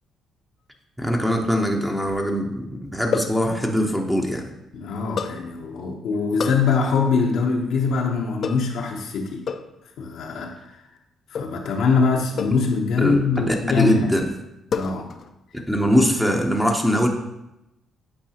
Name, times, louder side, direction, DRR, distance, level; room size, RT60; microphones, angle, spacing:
voice 1, 1.0-4.5 13.0-14.2 15.7-17.1, equal, 5° right, 1 dB, 0.7 m, -22 dB
sound 1, 1.3-2.3 3.1-3.4 5.2-5.4 6.4-6.7 8.4-8.8 9.5-9.8 11.3-11.6 12.4-12.7 13.3-13.8 14.7-15.3 15.6-16.0, left 5 dB, 55° left, 0.4 m, -30 dB
voice 2, 4.7-9.4 10.0-10.8 11.3-14.1 14.7-15.1, left 4 dB, 80° left, 0 dB, 0.7 m, -23 dB
8.7 x 4.6 x 2.8 m, 0.92 s
cardioid pair, 90°, 0 cm